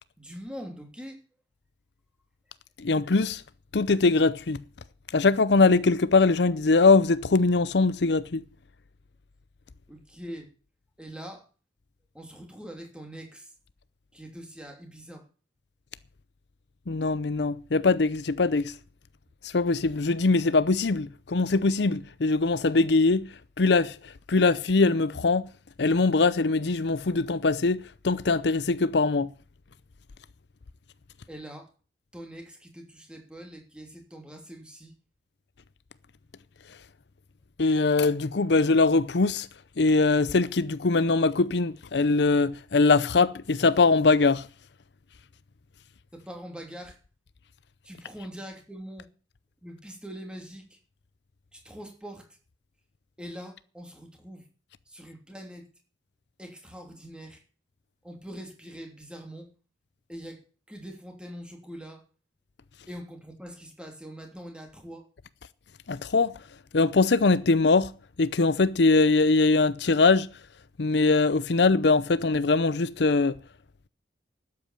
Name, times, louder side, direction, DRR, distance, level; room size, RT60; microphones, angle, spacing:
voice 1, 0.2-1.2 9.9-10.5 11.0-11.5 12.1-13.5 14.1-15.3 31.3-31.7 32.1-35.0 46.1-47.0 47.8-49.1 49.6-50.8 51.5-52.4 53.2-54.5 54.9-55.7 56.4-57.4 58.0-59.5 60.1-62.0 62.9-65.1, equal, 5° right, 3.1 m, -43 dB
voice 2, 2.8-3.4 3.7-4.6 5.1-8.4 16.9-18.7 19.4-23.3 23.6-25.5 25.8-29.3 37.6-39.5 39.8-44.5 65.9-66.3 66.7-67.9 68.2-70.3 70.8-73.4, left 3 dB, 65° left, 0.6 m, -22 dB
12.5 x 8.6 x 8.6 m
head